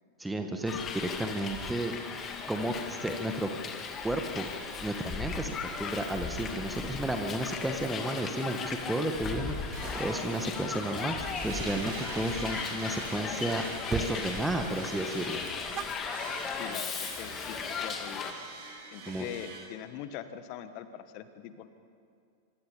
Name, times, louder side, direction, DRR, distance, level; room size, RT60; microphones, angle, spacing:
voice 1, 0.2-2.0 2.5-3.6 4.0-4.5 4.8-13.7 13.9-15.4 19.1-19.3, right 1 dB, 5° right, 5 dB, 1.7 m, -32 dB
Hiss, 0.7-18.3, left 5 dB, 25° left, 2.3 m, -37 dB
sound 1, 9.2-13.5 13.9-14.3 14.5-15.0 15.3-16.6, right 10 dB, 30° right, 0.9 m, -43 dB
sound 2, 9.3-19.6, right 3 dB, 50° right, 7.2 m, -44 dB
voice 2, 16.5-18.3 18.9-21.7, left 10 dB, 45° left, 11 dB, 1.5 m, -42 dB
25.5 x 24.5 x 5.2 m, 2.4 s
figure-of-eight pair, 90°, 0 cm